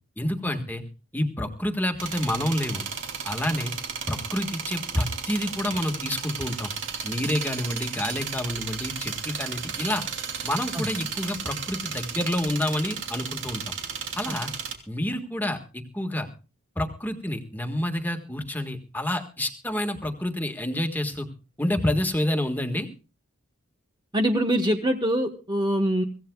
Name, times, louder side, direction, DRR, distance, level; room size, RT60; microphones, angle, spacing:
voice 1, 0.2-0.8 1.1-2.8 3.2-3.7 4.1-6.7 7.0-10.0 10.4-13.7 14.2-14.5 14.9-16.3 16.7-21.3 21.6-22.9, left 1 dB, 10° left, 4 dB, 1.6 m, -28 dB
sound 1, 2.0-14.7, right 6 dB, 60° right, 2.9 m, -34 dB
voice 2, 24.1-26.0, equal, 20° right, 5 dB, 1.2 m, -24 dB
24.5 x 16.5 x 2.3 m, 0.34 s
head